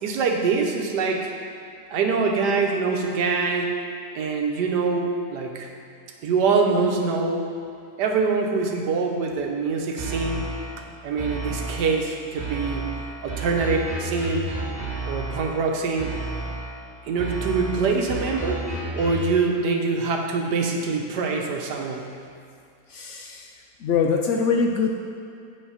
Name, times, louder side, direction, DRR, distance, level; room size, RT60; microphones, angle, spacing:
voice 1, 0.0-1.3 1.9-3.7 4.1-5.7 6.2-7.5 8.0-10.5 11.0-12.9 13.2-14.5 15.1-16.1 17.1-18.7 18.9-22.1, right 4 dB, 90° right, 2 dB, 1.4 m, -24 dB
sound 1, 10.0-10.8 11.2-12.0 12.4-15.6 16.0-16.8 17.2-19.4, right 2 dB, 25° right, 2.2 m, -31 dB
voice 2, 22.9-23.5 23.8-24.9, left 5 dB, 70° left, 2 dB, 0.7 m, -23 dB
8.0 x 5.2 x 5.6 m, 2.4 s
omnidirectional pair, 1.7 m